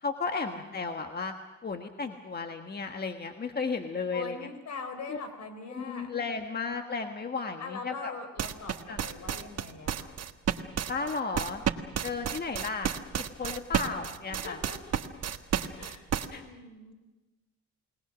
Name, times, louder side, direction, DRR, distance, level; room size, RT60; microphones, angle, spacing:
voice 1, 0.0-1.3 1.6-4.4 5.1-5.2 5.8-8.1 8.9-9.0 10.9-11.6 12.0-12.9 13.2-14.6 16.3-16.4, left 4 dB, 30° left, 5 dB, 1.5 m, -34 dB
voice 2, 0.6-0.9 4.1-6.1 7.6-10.3 14.3-15.0 15.8-16.9, left 4 dB, 65° left, 8 dB, 4.3 m, -42 dB
sound 1, 8.4-16.3, right 9 dB, 55° right, 1.4 m, -31 dB
29.5 x 19.5 x 6.2 m, 1.1 s
cardioid pair, 90°, 30 cm